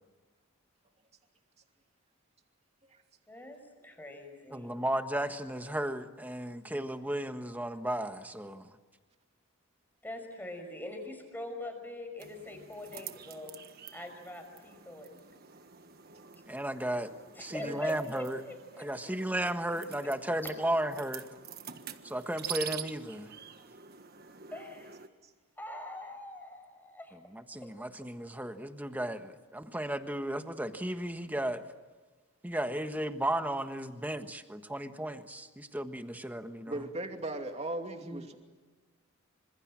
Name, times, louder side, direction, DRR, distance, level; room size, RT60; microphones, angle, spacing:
voice 1, 3.3-3.6 3.8-4.7 10.0-13.6 13.9-15.2 17.3-19.4 20.4-20.6 24.5-25.0 25.6-27.2 27.6-27.7, left 1 dB, 10° left, 5 dB, 5.6 m, -43 dB
voice 2, 4.5-8.7 16.5-18.4 18.8-21.2 22.0-23.3 27.3-31.6 32.4-36.8 38.1-38.3, right 1 dB, 10° right, 7 dB, 1.4 m, -34 dB
sound 1, 12.2-25.1, right 9 dB, 45° right, 1.5 m, -46 dB
voice 3, 36.7-38.4, right 2 dB, 30° right, 4 dB, 2.7 m, -38 dB
28.0 x 26.5 x 7.6 m, 1.4 s
head